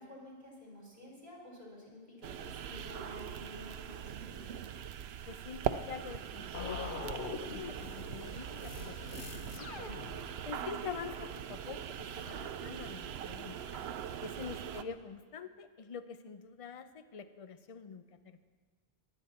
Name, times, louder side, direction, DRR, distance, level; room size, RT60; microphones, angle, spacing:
voice 1, 0.0-4.5 10.5-10.7 14.5-14.7, left 1 dB, 45° right, -3 dB, 4.6 m, -51 dB
sound 1, 2.2-14.8, right 9 dB, 85° right, 0.8 m, -41 dB
voice 2, 5.3-9.8 10.4-13.6 14.2-18.4, left 6 dB, 40° left, 11 dB, 0.6 m, -46 dB
sound 2, 6.5-10.6, left 5 dB, 60° left, 0.9 m, -44 dB
sound 3, 9.6-10.5 11.1-11.3 12.0-13.1 13.7-13.8 14.1-15.5, left 1 dB, 75° left, 4.8 m, -57 dB
22.0 x 9.1 x 4.3 m, 1.5 s
omnidirectional pair, 1.0 m